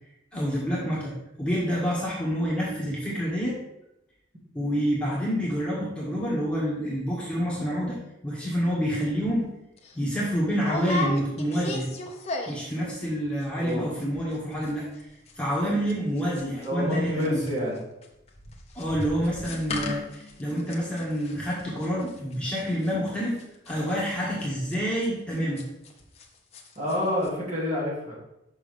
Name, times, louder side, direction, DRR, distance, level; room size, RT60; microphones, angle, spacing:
voice 1, 0.3-3.6 4.5-8.0 8.2-9.5 9.9-11.9 12.5-15.1 15.4-17.4 18.7-23.4 23.7-25.6, equal, 5° left, -6 dB, 1.7 m, -28 dB
sound 1, 9.2-9.4 9.8-9.9 10.6-12.8 13.0-13.4 13.7-13.8 14.0-14.4 14.6-16.9 17.2-26.3 26.5-27.0 27.2-27.3, left 2 dB, 35° left, 0.9 m, -36 dB
voice 2, 13.5-13.9 16.5-17.8 26.8-28.2, left 1 dB, 40° right, -6 dB, 2.4 m, -28 dB
6.3 x 6.1 x 3.4 m, 0.86 s
head